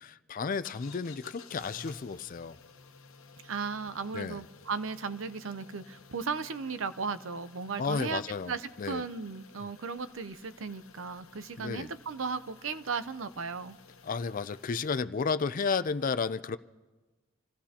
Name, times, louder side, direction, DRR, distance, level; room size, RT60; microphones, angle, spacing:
voice 1, 0.0-2.6 4.1-4.4 7.8-9.0 9.6-9.7 11.6-11.9 14.0-16.6, left 5 dB, 40° left, 13 dB, 0.4 m, -32 dB
sound 1, 0.6-15.0, left 5 dB, 80° left, 1.0 m, -54 dB
voice 2, 3.4-13.8, right 5 dB, 75° right, 12 dB, 0.7 m, -36 dB
27.5 x 15.0 x 2.9 m, 1.2 s
head